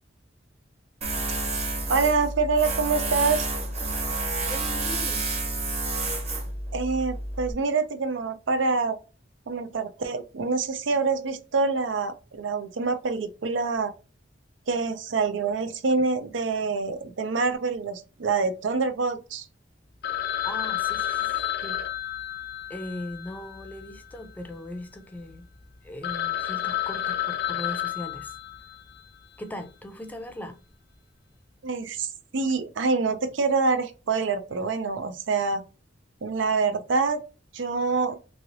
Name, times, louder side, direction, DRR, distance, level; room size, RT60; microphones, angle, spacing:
Tools, 1.0-7.5, right 2 dB, 35° right, 1.0 m, -29 dB
voice 1, 1.9-3.5 6.7-9.0 9.5-13.9 14.7-19.5 31.6-35.6 36.2-37.2 37.5-38.2, right 4 dB, 90° right, 0.6 m, -26 dB
voice 2, 4.4-5.2 20.4-21.8 22.7-25.5 25.8-28.3 29.4-30.6, left 1 dB, 10° left, 0.5 m, -39 dB
Telephone, 20.0-24.4 24.6-24.7 25.3-25.4 25.7-25.8 26.0-29.0, left 11 dB, 60° left, 0.6 m, -31 dB
3.1 x 2.9 x 2.7 m
head